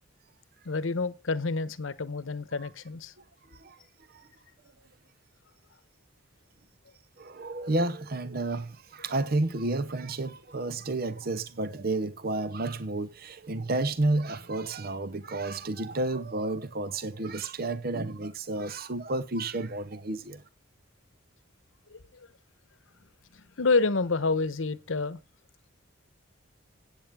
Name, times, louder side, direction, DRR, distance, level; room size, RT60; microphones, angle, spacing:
voice 1, 0.6-3.1 21.9-22.0 23.3-25.2, left 3 dB, 90° left, 0.9 m, -28 dB
voice 2, 7.2-20.4, right 2 dB, 50° right, 0.8 m, -31 dB
15.0 x 9.0 x 3.5 m
head